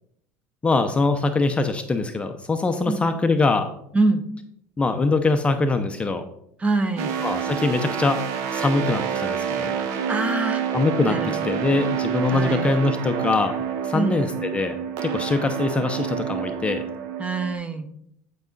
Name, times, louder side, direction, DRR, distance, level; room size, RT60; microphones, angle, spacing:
voice 1, 0.6-3.7 4.8-6.2 7.2-8.2 8.5-9.8 10.7-13.5 13.8-14.7 15.0-16.8, left 3 dB, 20° left, 7 dB, 0.6 m, -23 dB
voice 2, 6.6-7.1 10.1-10.6 11.0-11.6 12.3-12.7 13.9-14.2 17.2-17.9, right 3 dB, 20° right, 8 dB, 0.9 m, -24 dB
sound 1, 7.0-17.5, right 8 dB, 65° right, 0.9 m, -28 dB
9.7 x 4.8 x 3.9 m, 0.72 s
supercardioid pair, 120°, 7 cm